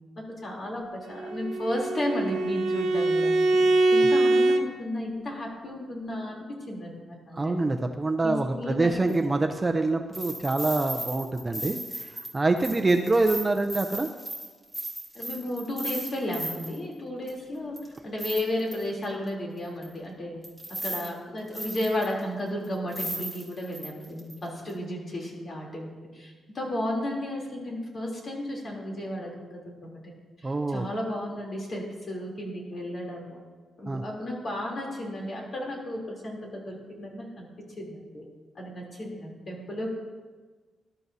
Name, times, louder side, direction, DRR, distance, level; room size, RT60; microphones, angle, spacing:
voice 1, 0.2-7.6 8.2-9.0 15.1-17.7 18.0-20.4 20.8-33.4 33.8-37.5 37.8-38.2 38.5-39.9, left 1 dB, 40° left, -2 dB, 3.3 m, -33 dB
Bowed string instrument, 1.1-4.6, right 2 dB, 80° right, 0.7 m, -23 dB
voice 2, 7.3-14.1 30.4-30.8 33.9-34.0, right 2 dB, 20° right, 5 dB, 0.6 m, -26 dB
sound 1, 9.1-9.2 10.1-16.8 17.3-17.4 17.8-19.0 19.8-19.9 20.4-21.1 21.4-22.2 22.6-22.7 22.9-24.3 24.7-24.8, right 1 dB, 5° left, 2.3 m, -36 dB
19.5 x 12.0 x 2.8 m, 1.4 s
wide cardioid pair, 160°, 0 cm